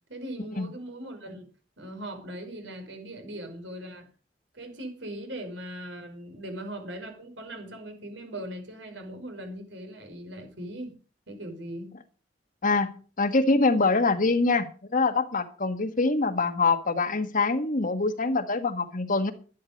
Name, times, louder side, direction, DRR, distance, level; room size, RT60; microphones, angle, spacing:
voice 1, 0.1-1.4 1.8-4.1 4.5-10.9 11.3-12.0, right 1 dB, 75° right, 5 dB, 5.4 m, -39 dB
voice 2, 12.6-19.3, left 3 dB, 45° left, 9 dB, 1.5 m, -24 dB
12.0 x 11.5 x 5.2 m, 0.38 s
head